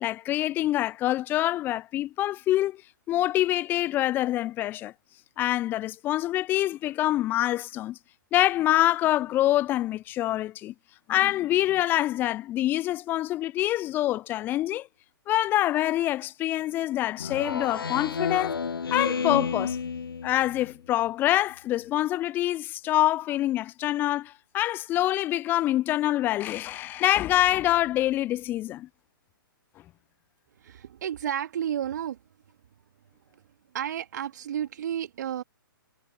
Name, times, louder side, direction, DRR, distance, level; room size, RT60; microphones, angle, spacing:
voice 1, 0.0-2.8 3.1-4.9 5.4-8.0 8.3-10.7 11.1-14.9 15.3-18.6 18.9-19.8 20.2-28.9, left 14 dB, 15° left, 0.4 m, -25 dB
Speech synthesizer, 17.2-20.7, left 5 dB, 80° left, 0.4 m, -30 dB
voice 2, 30.6-32.2 33.3-33.4 33.7-35.4, right 10 dB, 50° right, 2.6 m, -32 dB
figure-of-eight pair, 125°, 12 cm